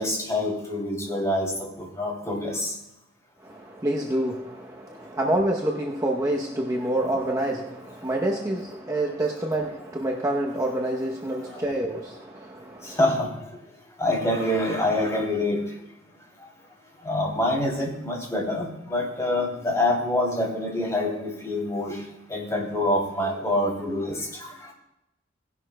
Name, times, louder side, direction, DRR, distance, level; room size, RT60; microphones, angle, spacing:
voice 1, 0.0-2.7 8.2-8.4 11.4-11.6 12.8-13.5 14.0-15.6 17.0-22.0 22.3-24.7, left 1 dB, 15° left, 2.8 m, -26 dB
voice 2, 3.4-13.0, right 1 dB, 15° right, 0.8 m, -27 dB
18.0 x 11.0 x 2.2 m
head